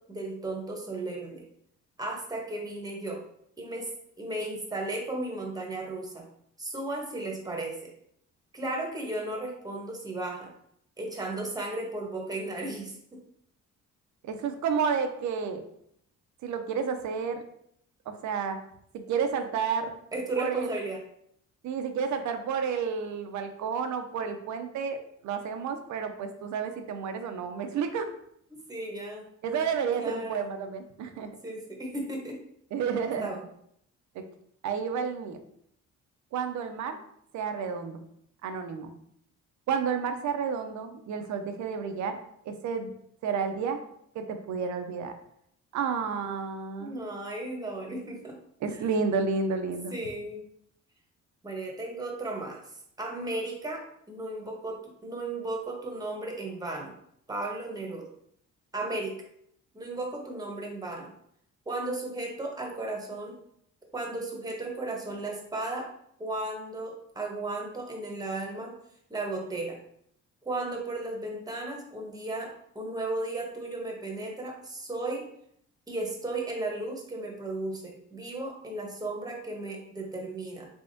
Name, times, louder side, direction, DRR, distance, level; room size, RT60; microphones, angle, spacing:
voice 1, 0.1-1.4 2.0-3.2 3.6-3.9 4.2-6.3 6.6-7.9 8.5-10.5 11.0-13.2 20.1-21.0 28.7-29.2 30.0-30.5 31.4-32.4 33.2-33.4 46.8-48.3 48.7-48.8 49.9-50.4 51.4-52.6 53.0-56.9 57.3-58.1 58.7-59.2 59.7-61.1 61.7-63.4 63.9-65.9 66.2-68.7 69.1-69.8 70.4-75.2 75.9-80.7, right 2 dB, 10° right, 0 dB, 1.0 m, -35 dB
voice 2, 14.2-15.6 16.4-17.4 18.1-18.6 19.1-20.0 20.4-20.7 21.6-25.0 25.2-28.1 29.4-31.3 32.7-33.3 34.2-34.3 34.6-35.4 36.3-37.0 37.3-38.0 38.4-38.9 39.7-42.2 42.5-42.9 43.2-43.8 44.1-45.1 45.7-47.0 48.6-49.9, right 6 dB, 70° right, 7 dB, 0.6 m, -31 dB
3.5 x 3.4 x 2.7 m, 0.71 s
cardioid pair, 90°, 30 cm